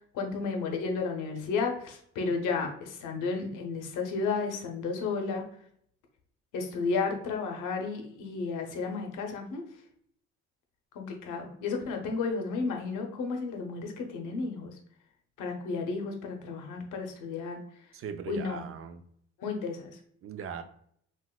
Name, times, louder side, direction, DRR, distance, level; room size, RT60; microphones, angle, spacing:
voice 1, 0.1-5.5 6.5-9.6 10.9-14.7 15.4-17.6 18.3-18.6 19.4-20.0, left 4 dB, 90° left, 3 dB, 0.7 m, -32 dB
voice 2, 17.9-19.0 20.2-20.6, right 7 dB, 45° right, 9 dB, 0.5 m, -39 dB
3.9 x 2.5 x 2.2 m, 0.65 s
cardioid pair, 90°, 30 cm